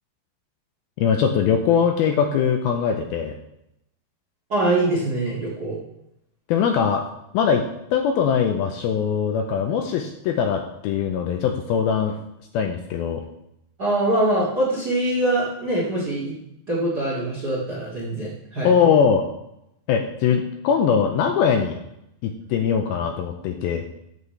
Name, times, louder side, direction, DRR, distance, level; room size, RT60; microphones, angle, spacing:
voice 1, 1.0-3.4 6.5-7.0 7.3-7.6 7.9-12.2 12.5-13.2 18.6-19.2 19.9-21.8 22.2-23.8, left 7 dB, 80° left, 4 dB, 2.3 m, -21 dB
voice 2, 4.5-5.8 13.8-16.3 16.7-18.7, right 1 dB, 40° right, -4 dB, 1.5 m, -23 dB
14.0 x 8.1 x 3.3 m, 0.82 s
omnidirectional pair, 4.9 m